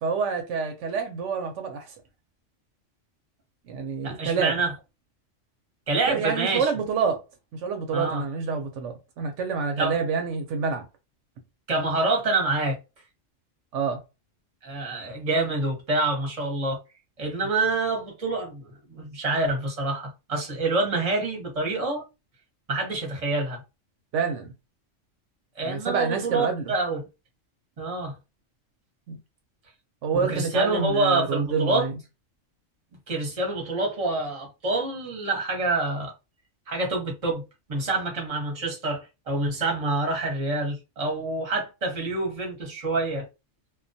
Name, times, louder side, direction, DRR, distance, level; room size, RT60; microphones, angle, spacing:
voice 1, 0.0-1.9 3.7-4.6 6.1-7.2 7.5-10.9 13.7-14.0 24.1-24.5 25.6-26.7 29.1-29.2 30.0-31.9, right 5 dB, 75° right, 0.9 m, -27 dB
voice 2, 4.0-4.7 5.9-6.7 7.9-8.2 9.8-10.0 11.7-12.8 14.6-16.8 17.2-22.0 22.7-23.6 25.6-27.0 27.8-28.1 30.3-31.9 33.1-36.1 36.7-37.4 37.7-43.3, right 2 dB, 30° right, 0.8 m, -27 dB
2.2 x 2.2 x 2.6 m
omnidirectional pair, 1.3 m